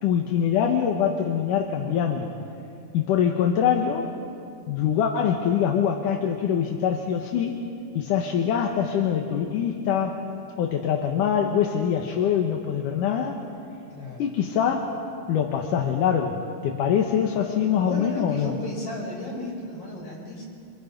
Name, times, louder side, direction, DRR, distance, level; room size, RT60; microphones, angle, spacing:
voice 1, 0.0-2.3 2.9-4.1 4.7-7.6 7.9-10.2 10.6-13.4 14.2-15.0 15.3-18.6, left 8 dB, 85° left, 2 dB, 2.8 m, -24 dB
voice 2, 13.9-14.2 17.8-20.4, left 1 dB, 60° left, -4 dB, 8.9 m, -34 dB
28.5 x 27.5 x 5.3 m, 2.5 s
omnidirectional pair, 3.6 m